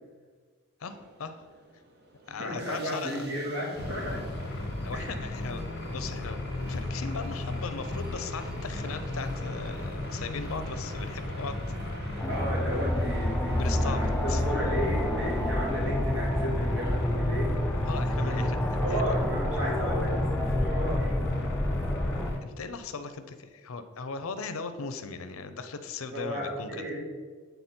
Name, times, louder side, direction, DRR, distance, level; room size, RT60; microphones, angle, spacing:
voice 1, 0.8-1.4 2.3-3.3 4.8-5.6 5.9-11.5 13.6-14.0 14.3-14.4 17.9-18.6 18.9-19.0 22.4-26.7, left 4 dB, 75° left, 10 dB, 0.6 m, -38 dB
Subway metro underground, 0.9-18.8, right 2 dB, 50° right, 0.7 m, -50 dB
voice 2, 2.3-4.2 4.9-5.3 12.3-17.8 18.2-18.6 18.8-21.1 26.1-27.0, equal, 70° right, -3 dB, 1.9 m, -34 dB
sound 1, 3.8-22.4, left 2 dB, 50° left, 1.3 m, -35 dB
sound 2, 12.2-22.3, left 1 dB, 5° left, 0.3 m, -29 dB
8.0 x 4.0 x 4.3 m, 1.5 s
head